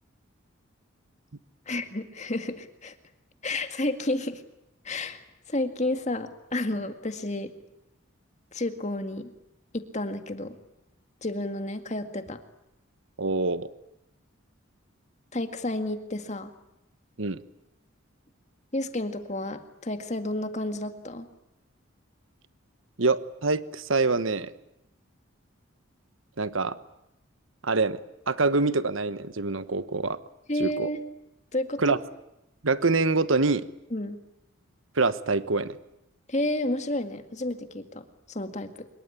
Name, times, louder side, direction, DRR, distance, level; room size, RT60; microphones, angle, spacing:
voice 1, 1.7-3.0 3.4-4.4 4.8-7.5 8.5-9.3 9.7-10.6 11.2-12.4 15.3-16.5 18.7-21.3 30.5-31.0 31.5-32.0 33.9-34.2 36.3-38.9, left 1 dB, 35° left, 8 dB, 2.0 m, -31 dB
voice 2, 13.2-13.7 17.2-17.4 23.0-24.5 26.4-26.8 27.6-28.0 28.3-30.2 30.6-30.9 31.8-32.0 32.6-33.7 35.0-35.7, right 3 dB, 70° right, 14 dB, 1.2 m, -25 dB
25.5 x 22.0 x 9.9 m, 0.85 s
head